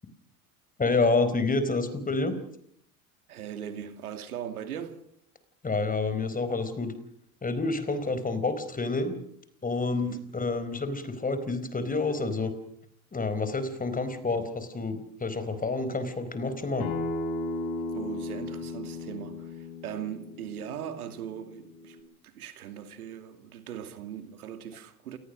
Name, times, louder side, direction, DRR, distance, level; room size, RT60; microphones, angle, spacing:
voice 1, 0.8-2.3 5.6-6.9 7.4-9.2 9.6-12.5 13.1-16.9, left 3 dB, 20° left, 4.4 m, -28 dB
voice 2, 3.3-5.0 10.0-10.2 17.9-22.0 22.2-25.2, right 9 dB, 85° right, 2.7 m, -39 dB
Acoustic guitar, 16.8-22.0, left 2 dB, 70° left, 7.1 m, -36 dB
28.5 x 19.0 x 6.5 m
hypercardioid pair, 80°, 44 cm